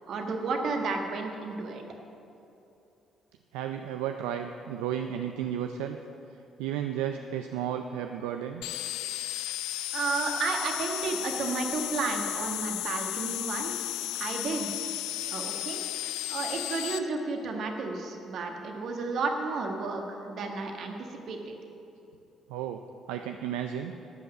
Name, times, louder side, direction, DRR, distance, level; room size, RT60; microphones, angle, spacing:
voice 1, 0.1-1.8 9.9-13.9 14.2-14.7 15.3-15.8 16.3-21.5, right 4 dB, 65° right, 3 dB, 1.4 m, -32 dB
voice 2, 3.5-6.0 6.6-8.6 22.5-22.8 23.1-23.9, right 9 dB, 85° right, 6 dB, 0.4 m, -33 dB
sound 1, 8.6-17.0, left 15 dB, 85° left, 0.3 m, -34 dB
12.0 x 5.7 x 7.7 m, 2.9 s
supercardioid pair, 55°, 0 cm